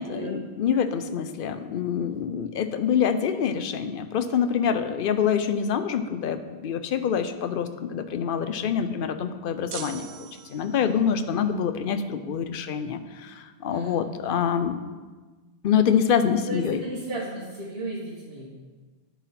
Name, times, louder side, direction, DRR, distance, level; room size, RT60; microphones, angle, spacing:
voice 1, 0.0-14.8 15.6-16.8, left 7 dB, 60° left, 10 dB, 0.7 m, -26 dB
sound 1, 9.7-11.0, right 8 dB, 85° right, 0.9 m, -40 dB
voice 2, 10.8-11.2 13.7-14.0 16.5-18.5, right 1 dB, 65° right, -6 dB, 1.6 m, -35 dB
10.0 x 4.1 x 5.7 m, 1.3 s
omnidirectional pair, 1.1 m